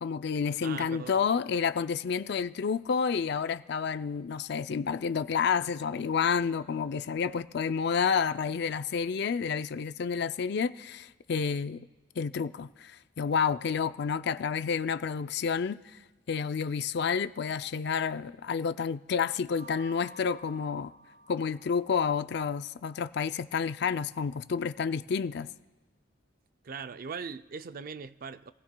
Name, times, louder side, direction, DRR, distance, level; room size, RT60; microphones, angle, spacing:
voice 1, 0.0-11.8 12.2-15.8 16.3-20.9 21.3-25.5, left 6 dB, 60° left, 0.4 m, -30 dB
voice 2, 0.6-1.2 26.6-28.5, right 5 dB, 50° right, 0.4 m, -40 dB
sound 1, 19.3-22.1, right 1 dB, 90° right, 3.4 m, -51 dB
26.5 x 16.0 x 2.2 m
head